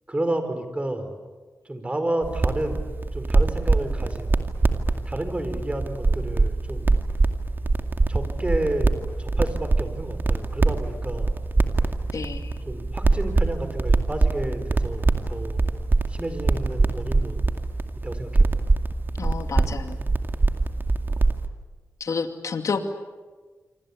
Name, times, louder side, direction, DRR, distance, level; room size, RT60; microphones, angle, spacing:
voice 1, 0.1-1.1 1.6-2.8 3.1-4.3 5.0-6.9 8.1-11.4 12.6-15.7 16.1-17.4 18.0-18.5, right 1 dB, 20° right, 8 dB, 4.8 m, -31 dB
sound 1, 2.2-21.5, right 3 dB, 35° right, 2.2 m, -24 dB
voice 2, 12.1-12.6 19.2-20.0 22.0-22.8, left 5 dB, 70° left, 6 dB, 2.5 m, -29 dB
27.0 x 25.5 x 8.6 m, 1.4 s
cardioid pair, 80°, 6 cm